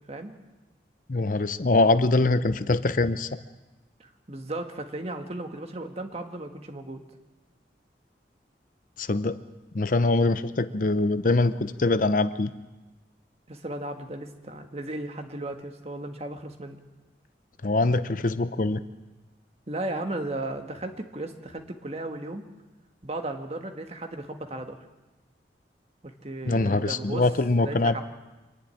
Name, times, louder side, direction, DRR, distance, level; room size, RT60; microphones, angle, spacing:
voice 1, 1.1-3.3 9.0-9.4 9.7-12.5 17.6-18.8 26.5-27.9, left 2 dB, 50° left, 13 dB, 0.7 m, -23 dB
voice 2, 4.0-7.0 13.5-16.8 19.7-22.4 23.0-24.8 26.0-27.3 27.6-28.0, right 2 dB, 35° right, 5 dB, 1.6 m, -35 dB
25.0 x 11.0 x 9.8 m, 1.1 s
head